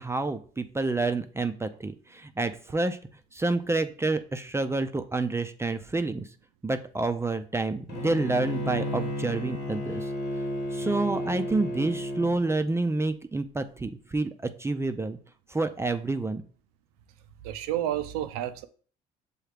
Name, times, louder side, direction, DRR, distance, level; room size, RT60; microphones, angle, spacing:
voice 1, 0.0-3.0 3.3-6.3 6.6-10.1 10.7-15.2 15.5-16.4, right 3 dB, 15° right, 0.4 m, -28 dB
Bowed string instrument, 7.9-12.4, equal, 70° left, 1.2 m, -32 dB
voice 2, 17.4-18.7, right 12 dB, 85° right, 0.4 m, -30 dB
6.4 x 2.3 x 3.3 m
hypercardioid pair, 65°, 19 cm